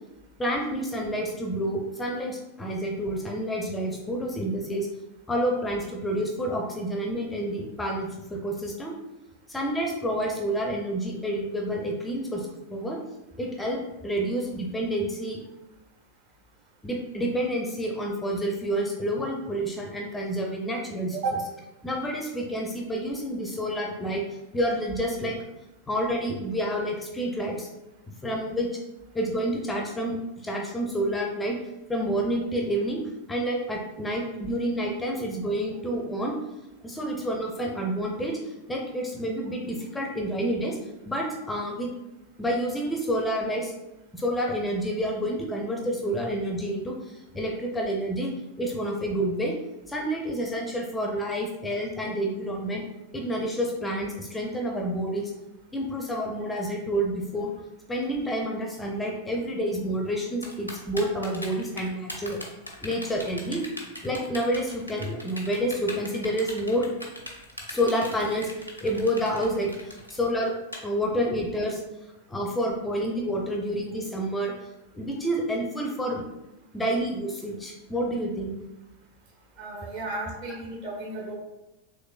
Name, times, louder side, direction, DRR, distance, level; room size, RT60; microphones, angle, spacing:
voice 1, 0.4-4.9 5.3-8.9 9.5-13.0 13.4-15.4 16.8-21.2 21.8-24.2 24.5-25.4 25.9-27.7 28.2-28.8 29.1-31.6 31.9-33.0 33.3-36.3 36.8-40.8 41.1-41.9 42.4-43.7 44.1-49.5 49.9-52.8 53.1-55.3 55.7-57.5 57.9-62.4 62.8-63.6 64.0-66.9 67.7-70.5 70.8-71.8 72.3-74.5 74.9-76.2 76.7-78.5, equal, 10° left, 0 dB, 0.5 m, -29 dB
voice 2, 21.1-21.4 79.6-81.3, right 3 dB, 50° right, -3 dB, 1.1 m, -33 dB
Typing, 60.4-70.8, left 1 dB, 90° left, 0.6 m, -39 dB
3.5 x 3.0 x 2.4 m, 0.96 s
figure-of-eight pair, 90°, 0 cm